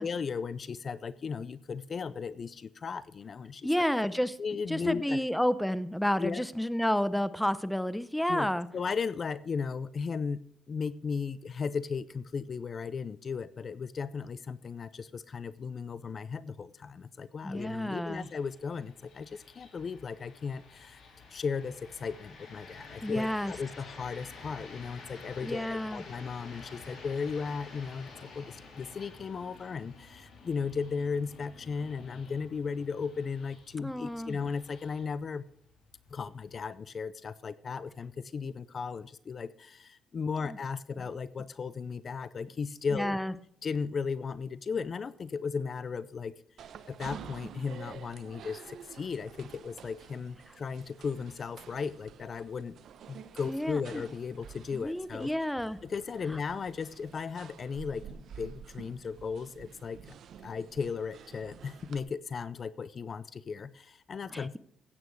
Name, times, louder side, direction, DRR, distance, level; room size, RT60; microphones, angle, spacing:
voice 1, 0.0-3.9 4.4-5.2 6.2-6.4 8.3-10.4 10.7-21.0 21.3-35.4 36.1-43.1 43.6-46.3 46.9-52.8 53.1-55.3 55.8-64.6, left 5 dB, 45° left, 17 dB, 0.5 m, -36 dB
voice 2, 3.6-4.4 4.7-8.7 17.4-18.3 23.0-23.5 25.4-26.0 33.8-34.4 40.4-40.6 42.9-43.3 53.5-54.0 54.7-55.8 64.3-64.6, equal, 5° left, 15 dB, 0.7 m, -30 dB
sound 1, 18.0-37.0, left 3 dB, 70° left, 4.7 m, -51 dB
sound 2, 46.6-62.0, right 8 dB, 65° right, 0.9 m, -50 dB
15.5 x 8.8 x 4.7 m, 0.67 s
cardioid pair, 90°, 0 cm